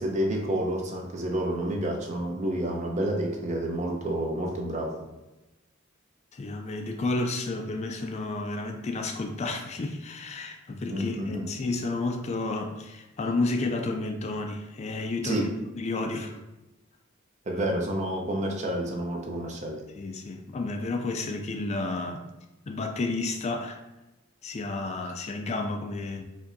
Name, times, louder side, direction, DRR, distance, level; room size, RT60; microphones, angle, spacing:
voice 1, 0.0-5.0 10.8-11.5 15.2-15.5 17.5-19.8, right 1 dB, 35° right, 1 dB, 0.6 m, -29 dB
voice 2, 6.3-15.5 15.8-16.4 20.0-22.3 22.7-23.8 24.4-26.2, left 2 dB, 30° left, 4 dB, 0.3 m, -31 dB
4.9 x 2.6 x 2.6 m, 1.0 s
head